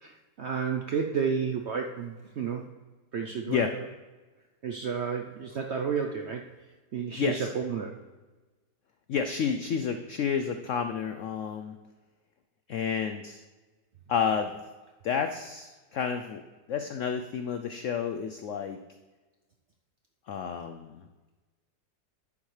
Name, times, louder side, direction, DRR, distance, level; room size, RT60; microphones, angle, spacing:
voice 1, 0.0-2.7 3.1-3.8 4.6-6.5 6.9-8.0, right 6 dB, 80° right, 3 dB, 0.6 m, -31 dB
voice 2, 7.2-7.5 9.1-11.8 12.7-13.4 14.1-14.5 15.0-16.4 16.7-18.8 20.3-21.0, left 7 dB, 85° left, 7 dB, 0.6 m, -30 dB
11.0 x 7.3 x 3.2 m, 1.2 s
omnidirectional pair, 1.9 m